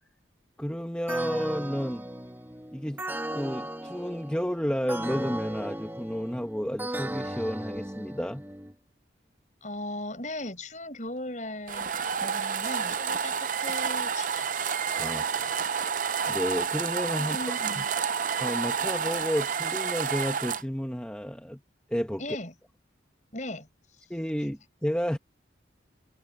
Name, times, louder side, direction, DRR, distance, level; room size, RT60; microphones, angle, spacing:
voice 1, 0.6-2.1 2.7-3.0 3.3-8.4 15.0-15.7 16.3-17.4 17.8-17.9 18.4-21.6 21.9-22.2 24.1-25.2, equal, 5° left, 1.0 m, -31 dB
sound 1, 1.1-8.7, right 1 dB, 10° right, 2.4 m, -36 dB
voice 2, 9.6-14.6 17.2-17.9 22.2-22.5 23.3-23.7, left 1 dB, 40° left, 6.8 m, -38 dB
sound 2, 11.7-20.6, right 6 dB, 45° right, 0.6 m, -29 dB
head